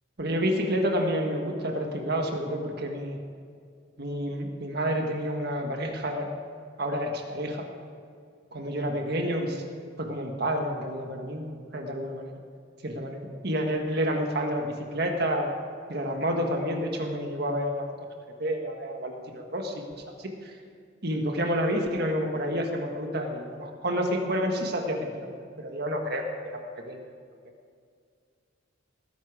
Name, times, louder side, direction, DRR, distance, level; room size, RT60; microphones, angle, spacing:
voice 1, 0.2-3.2 4.0-6.3 6.8-7.7 8.5-9.6 10.0-12.3 12.8-15.5 15.9-17.9 18.4-20.6 21.0-27.1, equal, 55° right, 3 dB, 1.5 m, -29 dB
19.0 x 10.5 x 4.9 m, 2.2 s
head